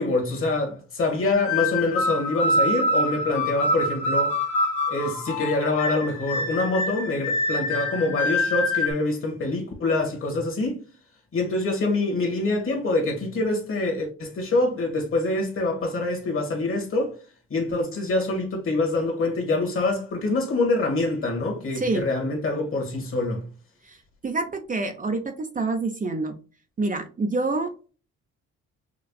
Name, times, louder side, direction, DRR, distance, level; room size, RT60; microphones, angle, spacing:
voice 1, 0.0-4.3 4.9-10.8 11.3-17.1 17.5-23.4, left 2 dB, 45° left, 2.0 m, -25 dB
sound 1, 1.3-8.9, left 1 dB, 85° left, 1.0 m, -25 dB
voice 2, 21.7-22.1 23.8-24.0 24.2-26.4 26.8-27.9, right 3 dB, 25° right, 0.7 m, -27 dB
5.9 x 2.4 x 2.3 m
cardioid pair, 90°, 30 cm